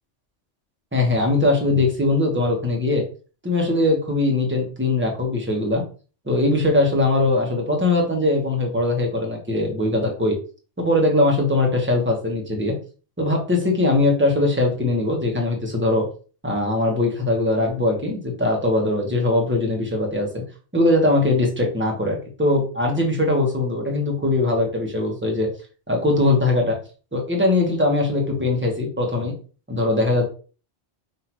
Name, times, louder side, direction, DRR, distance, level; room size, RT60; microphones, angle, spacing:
voice 1, 0.9-3.0 3.4-5.8 6.3-10.3 10.8-12.7 13.2-16.0 16.4-20.4 20.7-25.5 25.9-26.8 27.1-29.3 29.7-30.3, left 2 dB, 10° right, 0 dB, 1.1 m, -21 dB
5.6 x 2.8 x 3.0 m, 0.37 s
omnidirectional pair, 1.2 m